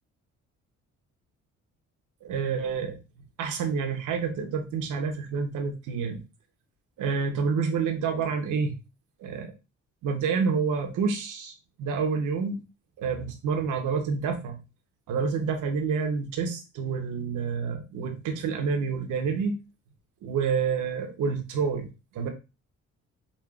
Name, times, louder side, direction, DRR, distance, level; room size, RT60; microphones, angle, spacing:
voice 1, 2.2-3.0 3.4-6.2 7.0-8.8 9.2-9.5 10.0-11.5 11.8-12.6 13.0-14.6 15.1-19.5 20.2-21.9 22.1-22.3, right 5 dB, 80° right, 5 dB, 0.9 m, -28 dB
5.3 x 2.5 x 2.4 m, 0.27 s
cardioid pair, 90°, 30 cm